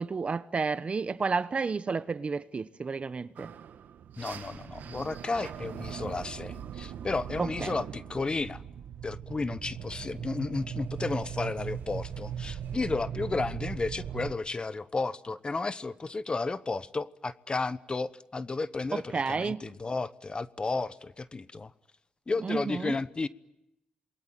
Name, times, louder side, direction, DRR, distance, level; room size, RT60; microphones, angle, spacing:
voice 1, 0.0-3.5 7.4-7.7 18.9-19.6 22.4-23.0, right 4 dB, 40° right, 1.1 m, -31 dB
sound 1, 3.4-14.3, right 8 dB, 80° right, 1.5 m, -39 dB
voice 2, 4.2-8.6 9.0-21.7 22.3-23.3, left 3 dB, 30° left, 1.0 m, -33 dB
28.0 x 22.0 x 9.2 m
cardioid pair, 85°, 3 cm